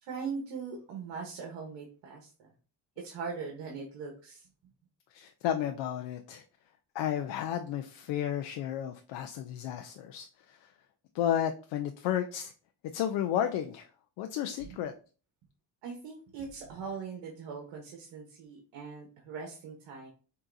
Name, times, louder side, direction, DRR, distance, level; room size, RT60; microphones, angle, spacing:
voice 1, 0.0-2.5 3.0-4.5 15.8-20.1, right 5 dB, 80° right, 2 dB, 1.2 m, -41 dB
voice 2, 5.1-6.4 6.9-10.7 11.1-12.5 12.9-13.9 14.2-14.9, left 10 dB, 80° left, 5 dB, 0.6 m, -32 dB
6.1 x 2.8 x 2.6 m, 0.37 s
cardioid pair, 125°, 42 cm